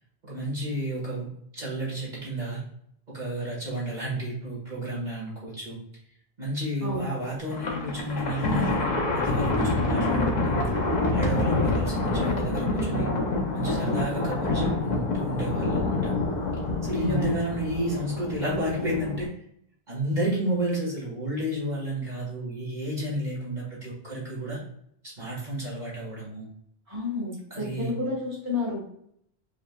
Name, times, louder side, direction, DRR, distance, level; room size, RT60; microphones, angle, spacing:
voice 1, 0.2-1.3 1.5-2.6 3.1-5.8 6.4-10.6 11.1-13.1 13.5-16.1 16.8-19.3 19.9-24.6 25.2-26.5 27.5-27.9, right 1 dB, 45° right, -6 dB, 1.8 m, -31 dB
Thunder, 7.5-19.3, left 2 dB, 45° left, 0.8 m, -27 dB
voice 2, 16.9-17.4 26.9-28.8, left 2 dB, 15° right, -5 dB, 1.5 m, -30 dB
5.0 x 3.5 x 2.3 m, 0.70 s
omnidirectional pair, 1.1 m